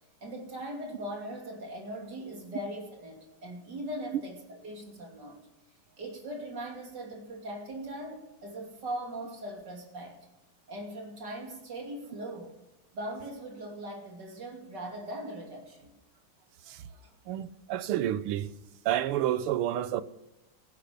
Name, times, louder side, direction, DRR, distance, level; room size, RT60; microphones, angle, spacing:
voice 1, 0.2-5.4 6.0-10.2 10.7-12.5 12.9-15.9 17.0-17.1, right 1 dB, 50° right, 3.4 m, -40 dB
voice 2, 17.3-18.5 18.8-20.0, right 12 dB, 90° right, 1.7 m, -29 dB
16.0 x 10.5 x 6.8 m
omnidirectional pair, 2.4 m